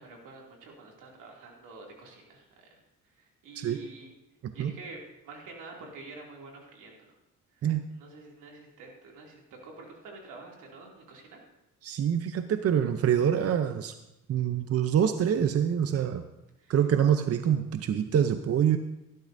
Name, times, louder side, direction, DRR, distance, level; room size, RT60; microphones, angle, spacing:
voice 1, 0.0-2.7 3.0-4.1 4.5-5.0 5.2-7.1 7.6-7.7 7.9-11.4 16.6-16.8, right 3 dB, 90° right, -1 dB, 2.6 m, -48 dB
voice 2, 11.8-13.9 14.3-16.2 16.7-18.8, right 9 dB, 50° right, 9 dB, 0.7 m, -25 dB
17.0 x 12.0 x 2.7 m, 0.94 s
cardioid pair, 90°, 30 cm